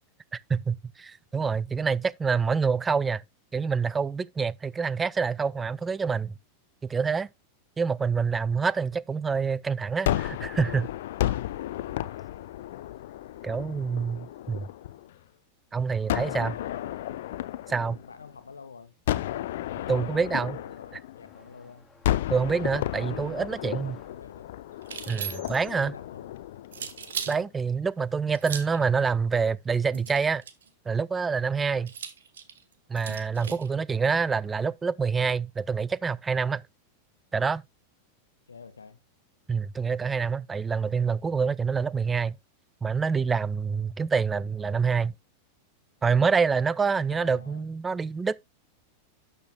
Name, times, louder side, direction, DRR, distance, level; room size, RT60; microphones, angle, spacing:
voice 1, 0.5-3.2 3.5-6.3 6.9-7.3 7.8-10.9 13.4-14.7 15.7-16.5 17.7-18.0 19.9-20.6 22.3-24.0 25.1-25.9 27.3-30.4 30.9-31.9 32.9-36.6 37.3-37.6 39.5-42.4 42.8-45.1 46.0-48.3, right 5 dB, 15° right, 0.3 m, -26 dB
Gunshot gunfire, 10.1-15.2 16.1-18.5 19.1-21.5 22.0-27.3, left 14 dB, 55° left, 0.6 m, -33 dB
voice 2, 13.6-14.1 15.9-17.2 18.0-18.9 19.8-21.9 23.0-24.6 25.7-26.3 27.3-27.5 31.7-32.0 38.5-39.0 40.9-41.0 47.0-47.7, left 5 dB, 75° left, 1.3 m, -48 dB
sound 1, 21.1-27.5 27.8-28.8 29.8-29.9 30.7-30.8 32.6-32.7, left 4 dB, 10° left, 2.6 m, -60 dB
sound 2, 24.8-25.7 26.7-27.4 28.3-28.8 29.9-30.7 31.9-33.7, right 8 dB, 65° right, 1.0 m, -37 dB
11.5 x 6.7 x 2.3 m
figure-of-eight pair, 90°, 0 cm